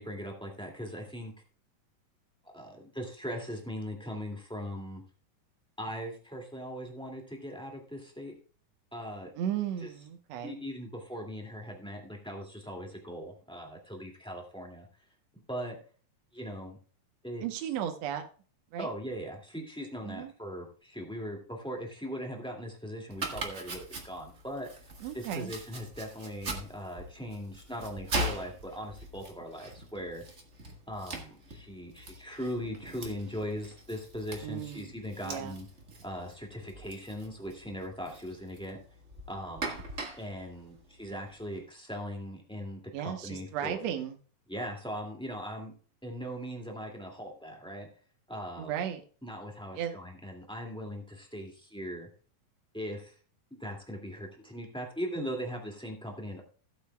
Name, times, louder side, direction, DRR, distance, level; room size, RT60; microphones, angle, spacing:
voice 1, 0.0-1.3 2.4-5.0 5.8-8.3 8.9-9.3 9.8-9.9 10.4-14.9 15.5-15.7 16.3-16.8 17.2-17.4 18.8-24.7 25.1-30.2 30.9-35.6 36.0-38.8 39.3-39.8 40.1-43.9 44.5-45.7 46.0-47.9 48.3-48.7 49.2-52.1 52.7-53.1 53.5-56.4, equal, ahead, 0 dB, 1.1 m, -39 dB
voice 2, 9.4-10.6 17.4-18.3 18.7-18.9 20.0-20.3 25.0-25.5 34.4-34.9 35.2-35.6 42.9-44.2 48.6-49.0 49.7-50.0, right 10 dB, 70° right, 5 dB, 1.7 m, -35 dB
Domestic sounds home sounds, 23.1-41.6, right 2 dB, 45° right, 0.9 m, -41 dB
16.0 x 8.5 x 2.3 m, 0.39 s
omnidirectional pair, 4.1 m